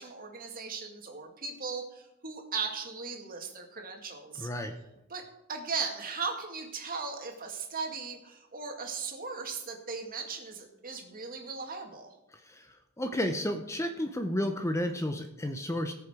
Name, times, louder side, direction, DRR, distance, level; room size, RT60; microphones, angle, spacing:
voice 1, 0.0-4.5 5.1-5.2 5.5-12.1, right 5 dB, 40° right, 3 dB, 2.1 m, -37 dB
voice 2, 4.4-4.7 12.3-15.9, left 1 dB, 15° left, 6 dB, 0.8 m, -32 dB
18.5 x 6.9 x 5.0 m, 0.93 s
head